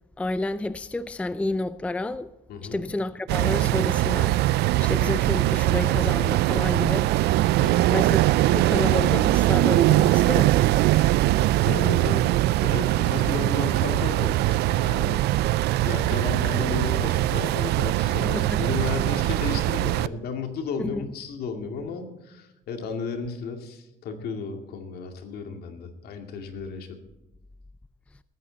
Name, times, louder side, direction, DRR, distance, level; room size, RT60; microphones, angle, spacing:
voice 1, 0.2-2.3 2.6-4.4 4.8-7.1 7.9-10.7 18.2-18.7 20.8-21.1, left 2 dB, 5° left, 0.4 m, -30 dB
sound 1, 3.3-20.1, right 16 dB, 75° right, 0.4 m, -22 dB
voice 2, 11.6-12.3 12.6-15.3 15.8-27.0, left 5 dB, 70° left, 2.3 m, -33 dB
19.5 x 9.3 x 4.0 m
cardioid pair, 110°, 17 cm